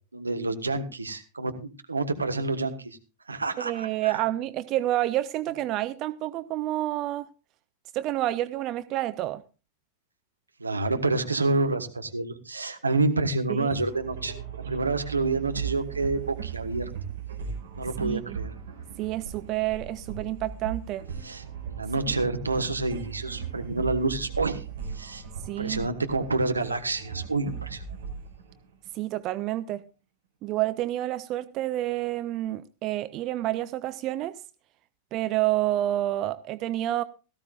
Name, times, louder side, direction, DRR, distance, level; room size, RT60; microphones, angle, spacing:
voice 1, 0.1-3.0 3.3-4.1 10.6-14.3 14.7-16.9 17.8-18.5 21.2-24.6 25.0-25.2 25.6-27.8, right 3 dB, 80° right, 1.3 m, -28 dB
voice 2, 3.6-7.3 7.9-9.4 13.5-13.7 18.0-18.4 19.0-21.0 25.5-25.9 28.9-29.8 30.4-34.4 35.1-37.0, right 15 dB, 35° right, 0.6 m, -29 dB
sound 1, 13.7-29.3, right 7 dB, 60° right, 4.7 m, -38 dB
17.5 x 14.5 x 2.4 m
figure-of-eight pair, 90°, 0 cm